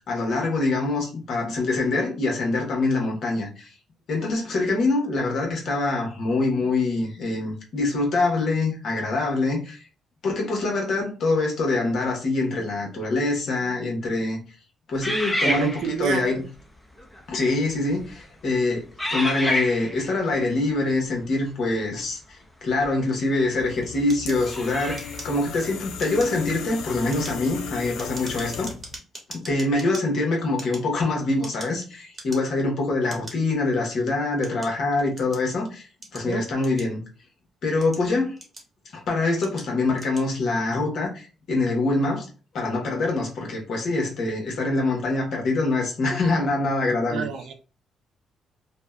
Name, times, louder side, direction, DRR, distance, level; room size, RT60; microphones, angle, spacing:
voice 1, 0.1-3.7 4.1-9.8 10.2-14.4 14.9-16.4 17.3-28.7 29.3-35.9 36.1-37.0 37.6-38.4 38.9-42.3 42.5-47.3, left 2 dB, 65° left, 1.0 m, -24 dB
sound 1, 15.0-16.2 17.0-17.2 17.9-18.2 19.0-20.1 22.8-22.9 24.4-25.3, left 1 dB, 10° left, 0.6 m, -28 dB
voice 2, 15.4-16.5 36.1-36.5 47.1-47.5, right 8 dB, 80° right, 0.4 m, -30 dB
sound 2, 23.6-29.0, left 6 dB, 90° left, 0.3 m, -36 dB
sound 3, 24.1-25.6 25.9-26.4 26.9-30.0 30.5-31.8 32.1-32.6 33.1-33.4 34.0-35.5 36.0-37.2 37.7-38.9 39.4-39.7 39.9-40.3, right 2 dB, 25° right, 1.0 m, -42 dB
2.7 x 2.1 x 2.2 m
cardioid pair, 90°, 0 cm